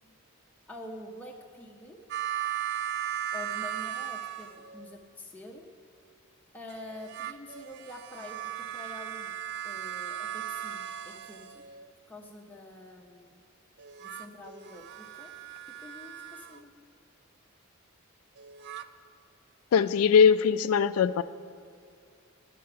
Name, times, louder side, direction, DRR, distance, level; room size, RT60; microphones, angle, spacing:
voice 1, 0.7-2.0 3.3-5.6 6.5-9.3 9.6-11.6 12.1-13.4 14.0-15.3 15.8-16.7, left 1 dB, 5° left, 0 dB, 0.6 m, -46 dB
sound 1, 2.1-4.9 6.7-11.9 13.8-16.6 18.4-18.9, right 10 dB, 50° right, 0.4 m, -37 dB
voice 2, 19.7-21.2, left 6 dB, 85° left, 15 dB, 0.3 m, -21 dB
10.0 x 6.8 x 6.7 m, 2.2 s
head